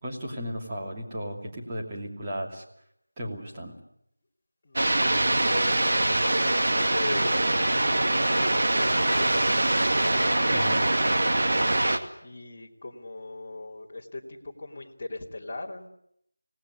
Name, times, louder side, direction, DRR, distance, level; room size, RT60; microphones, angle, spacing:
voice 1, 0.0-2.6 3.2-3.8 10.5-10.8, equal, 15° right, -3 dB, 2.8 m, -35 dB
voice 2, 4.6-7.8 8.1-10.9 12.2-15.9, left 2 dB, 20° left, -4 dB, 2.9 m, -39 dB
sound 1, 4.7-12.0, right 1 dB, 50° right, 2.3 m, -23 dB
26.0 x 19.0 x 9.7 m, 0.75 s
figure-of-eight pair, 175°, 0 cm